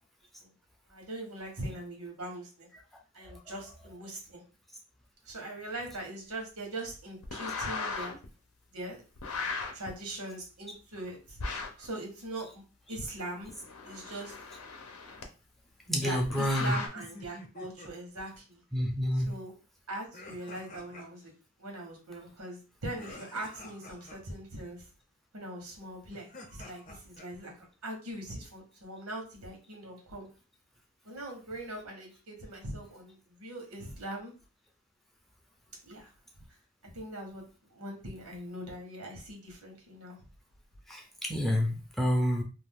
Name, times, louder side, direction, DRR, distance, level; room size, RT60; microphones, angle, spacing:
voice 1, 0.9-2.7 3.1-4.4 5.2-8.1 8.7-9.0 9.7-11.4 11.8-12.6 12.9-13.5 13.8-14.3 16.0-18.6 19.1-19.5 19.9-21.3 21.6-24.9 25.3-30.3 31.0-34.3 35.8-36.1 36.8-37.4 37.7-40.2, right 1 dB, 90° right, 1 dB, 1.1 m, -41 dB
sound 1, 7.2-8.2 9.1-9.9 11.4-11.9 13.4-15.2 16.2-16.9, left 4 dB, 85° left, 0.7 m, -37 dB
voice 2, 15.9-16.7 18.7-19.3 40.9-42.4, equal, ahead, 1 dB, 0.4 m, -28 dB
sound 2, 16.5-17.9 20.1-21.3 22.9-24.2 26.0-27.3, left 1 dB, 35° left, 0.7 m, -48 dB
2.6 x 2.4 x 3.5 m, 0.34 s
head